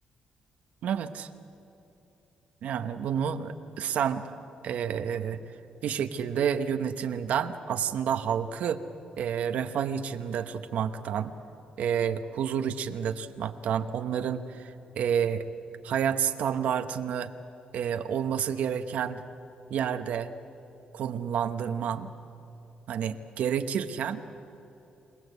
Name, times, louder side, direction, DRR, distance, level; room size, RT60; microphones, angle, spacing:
voice 1, 0.8-1.3 2.6-4.3 4.6-5.4 5.8-8.8 9.2-11.3 11.8-15.5 15.8-17.3 17.7-19.2 19.7-20.3 20.9-22.1 22.9-24.2, right 8 dB, 80° right, 8 dB, 1.0 m, -29 dB
27.5 x 18.0 x 8.2 m, 2.9 s
cardioid pair, 100°, 2 cm